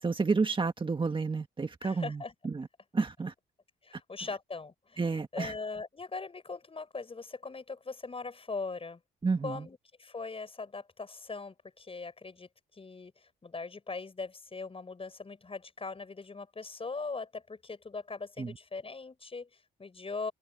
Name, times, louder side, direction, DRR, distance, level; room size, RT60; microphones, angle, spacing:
voice 1, 0.0-2.7 2.9-3.3 5.0-5.5 9.2-9.7 18.4-18.6, right 4 dB, 25° right, 1.6 m, -30 dB
voice 2, 1.8-2.3 3.8-9.0 9.4-20.3, left 4 dB, 30° left, 7.0 m, -40 dB
cardioid pair, 90°, 20 cm